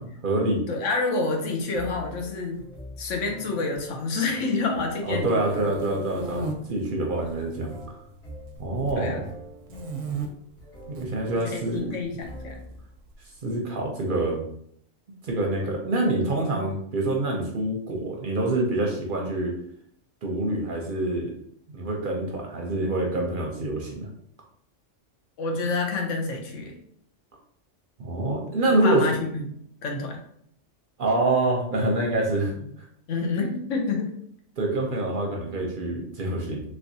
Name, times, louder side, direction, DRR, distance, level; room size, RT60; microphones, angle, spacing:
voice 1, 0.0-0.6 5.1-7.7 8.6-9.3 10.9-11.9 13.4-14.4 15.2-19.6 20.2-21.3 21.7-24.1 28.0-29.2 31.0-32.5 34.6-36.6, right 2 dB, 55° right, 0 dB, 0.7 m, -26 dB
voice 2, 0.7-2.6 3.0-5.6 7.2-7.5 9.0-9.2 11.4-12.6 25.4-26.8 28.6-29.5 29.8-30.2 33.1-34.1, left 3 dB, 80° left, 2 dB, 1.1 m, -28 dB
sound 1, 1.7-12.9, equal, 55° left, 1.5 m, -45 dB
sound 2, 5.1-6.5 7.2-7.8 8.1-9.1 9.7-10.3 10.8-11.1 12.2-13.1, right 3 dB, 80° right, 0.9 m, -35 dB
3.2 x 3.1 x 2.6 m, 0.68 s
omnidirectional pair, 1.3 m